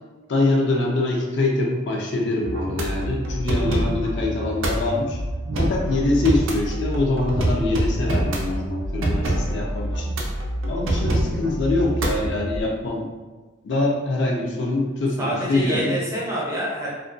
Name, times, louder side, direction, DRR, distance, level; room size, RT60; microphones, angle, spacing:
voice 1, 0.3-5.2 5.6-10.2 10.7-13.1 13.6-15.9, left 2 dB, 60° left, -1 dB, 0.5 m, -24 dB
sound 1, 2.4-12.6, right 1 dB, 75° right, 0.5 m, -26 dB
voice 2, 15.2-16.9, right 1 dB, 15° right, -6 dB, 0.5 m, -26 dB
2.5 x 2.2 x 2.4 m, 1.3 s
head